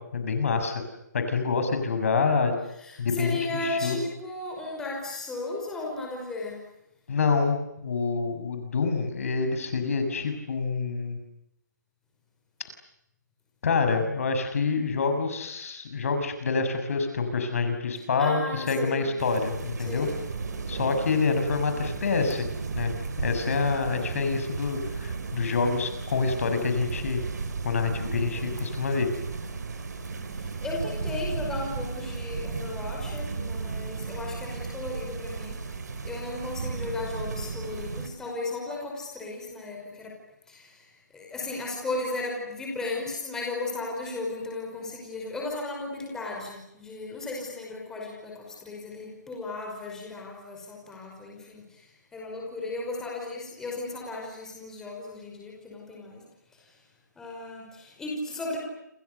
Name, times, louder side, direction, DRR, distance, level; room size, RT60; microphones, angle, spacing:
voice 1, 0.1-0.8 1.1-2.5 3.0-4.0 7.1-7.6 7.8-11.2 13.6-20.1 20.7-22.5 22.7-27.2 27.6-29.1, left 4 dB, 50° left, 7 dB, 6.5 m, -27 dB
voice 2, 2.9-6.6 18.2-19.1 19.8-20.2 30.4-35.6 36.0-40.1 40.5-40.7 41.1-51.6 52.1-56.2 57.2-58.6, left 2 dB, 5° left, -1 dB, 5.4 m, -35 dB
sound 1, 19.2-38.1, right 4 dB, 65° right, 5.6 m, -34 dB
29.5 x 28.5 x 6.9 m, 0.82 s
hypercardioid pair, 170°, 10 cm